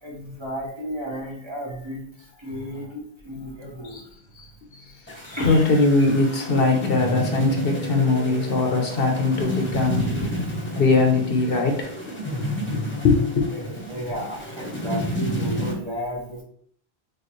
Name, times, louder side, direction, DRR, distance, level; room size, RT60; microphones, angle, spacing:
voice 1, 0.0-4.9 5.4-5.7 9.7-10.7 13.5-16.4, equal, 30° right, -2 dB, 1.0 m, -33 dB
sound 1, 5.1-15.7, equal, 10° left, 0.9 m, -31 dB
voice 2, 5.2-10.0 10.8-11.9 12.4-13.5, left 3 dB, 70° left, 3 dB, 1.0 m, -21 dB
6.4 x 2.4 x 3.2 m, 0.63 s
omnidirectional pair, 1.0 m